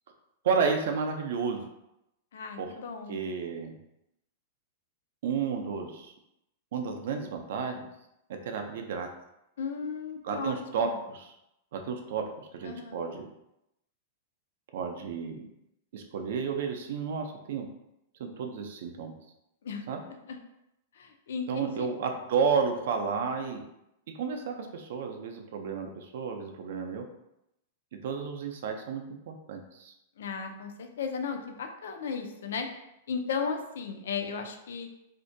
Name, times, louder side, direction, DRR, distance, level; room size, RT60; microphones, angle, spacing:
voice 1, 0.4-1.6 2.6-2.7 3.1-3.7 5.2-6.1 6.7-7.9 8.3-9.1 10.2-11.3 11.7-13.3 14.7-15.4 15.9-17.7 18.2-19.1 19.9-20.0 21.5-23.6 24.2-27.0 28.0-29.9, right 5 dB, 65° right, 4 dB, 0.4 m, -32 dB
voice 2, 2.3-3.2 9.6-11.0 12.6-13.0 19.6-19.9 20.3-20.4 20.9-21.9 30.2-32.7 33.1-34.9, left 5 dB, 80° left, 5 dB, 0.4 m, -35 dB
2.5 x 2.1 x 2.5 m, 0.85 s
supercardioid pair, 165°, 0 cm